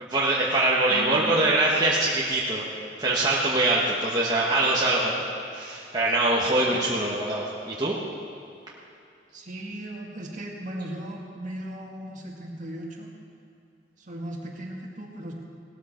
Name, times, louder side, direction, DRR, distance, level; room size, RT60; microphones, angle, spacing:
voice 1, 0.0-2.7 3.0-5.2 5.5-7.9, right 2 dB, 25° right, -5 dB, 1.3 m, -23 dB
voice 2, 0.9-1.4 6.6-6.8 9.3-13.1 14.0-15.3, right 1 dB, 45° right, -1 dB, 2.1 m, -37 dB
17.5 x 13.5 x 4.4 m, 2.6 s
head